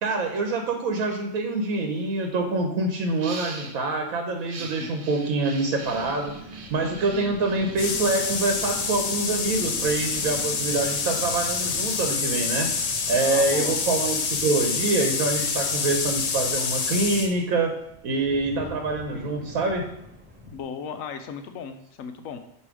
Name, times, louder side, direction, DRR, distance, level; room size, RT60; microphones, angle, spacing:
voice 1, 0.0-6.4 6.7-12.7 13.1-17.8 18.0-19.9, right 3 dB, 90° right, 4 dB, 1.3 m, -25 dB
sound 1, 1.9-2.0 2.3-2.5 3.0-3.9 4.3-9.6 10.1-15.9, right 4 dB, 55° right, 1.1 m, -44 dB
voice 2, 4.6-4.9 13.2-13.8 20.5-22.4, left 6 dB, 75° left, 8 dB, 1.1 m, -36 dB
sound 2, 5.8-20.6, equal, 10° right, 0.7 m, -45 dB
sound 3, 7.8-17.3, left 5 dB, 55° left, 0.4 m, -27 dB
8.2 x 3.1 x 4.8 m, 0.75 s
omnidirectional pair, 1.4 m